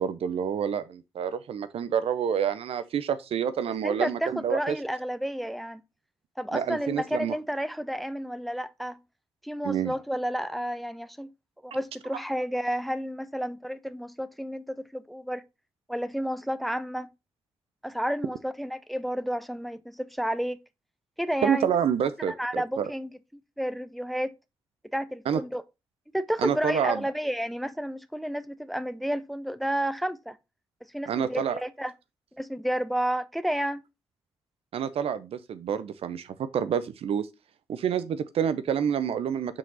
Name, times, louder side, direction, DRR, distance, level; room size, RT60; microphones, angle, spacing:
voice 1, 0.0-4.8 6.5-7.4 9.6-9.9 21.4-22.9 25.3-25.4 26.4-27.0 31.1-31.6 34.7-37.3 37.7-39.6, right 8 dB, 70° right, 0.6 m, -28 dB
voice 2, 3.8-5.8 6.4-9.0 9.4-11.3 11.6-15.4 15.9-17.1 17.8-20.6 21.2-21.7 22.3-23.1 23.6-24.3 24.9-25.6 26.1-30.4 30.9-31.9 32.4-33.8, equal, ahead, 0.6 m, -31 dB
5.8 x 4.9 x 3.9 m
supercardioid pair, 50°, 10 cm